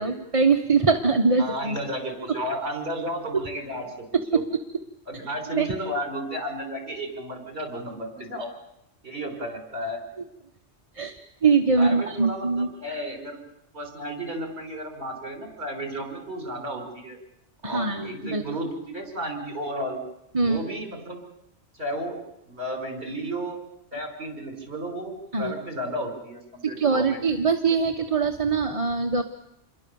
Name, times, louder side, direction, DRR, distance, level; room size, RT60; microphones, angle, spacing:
voice 1, 0.0-1.8 2.9-3.0 4.1-4.4 5.5-5.7 10.9-12.7 17.6-18.4 20.3-20.6 25.3-25.5 26.6-29.2, right 4 dB, 30° right, 4 dB, 1.2 m, -23 dB
voice 2, 1.4-4.1 4.3-4.4 5.1-8.5 9.0-10.0 11.8-13.4 13.7-17.2 17.6-20.0 20.4-21.2 21.8-22.1 22.5-23.6 23.9-27.2, equal, 60° right, 3 dB, 6.3 m, -33 dB
28.0 x 22.0 x 7.1 m, 0.80 s
omnidirectional pair, 1.2 m